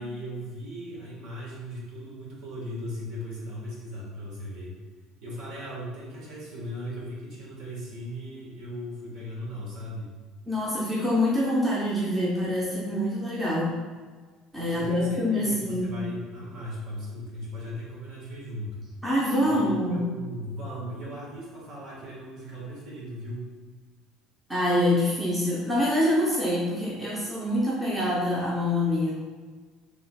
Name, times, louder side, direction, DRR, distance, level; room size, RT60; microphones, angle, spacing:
voice 1, 0.0-4.8 5.2-10.1 14.7-18.8 19.4-23.5, equal, 50° right, -5 dB, 1.4 m, -37 dB
voice 2, 10.5-13.8 14.5-16.0 19.0-20.0 24.5-29.1, left 1 dB, 5° right, -7 dB, 0.6 m, -25 dB
5.8 x 3.5 x 2.3 m, 1.4 s
cardioid pair, 170°, 0 cm